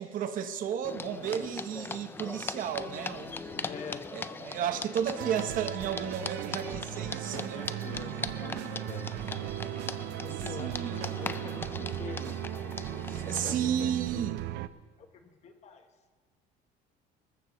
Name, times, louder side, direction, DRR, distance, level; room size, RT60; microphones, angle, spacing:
voice 1, 0.0-3.7 4.1-7.8 10.6-11.0 13.1-14.4, right 8 dB, 50° right, 8 dB, 0.9 m, -33 dB
sound 1, 0.8-13.5, left 4 dB, 10° left, 0.3 m, -40 dB
voice 2, 3.6-4.1 7.2-9.4 10.2-12.5 13.1-13.9 15.0-15.9, left 5 dB, 35° left, 7 dB, 1.1 m, -45 dB
Classical Rock, 5.2-14.7, right 14 dB, 70° right, 0.5 m, -37 dB
19.5 x 14.0 x 3.1 m, 1.4 s
cardioid pair, 150°, 18 cm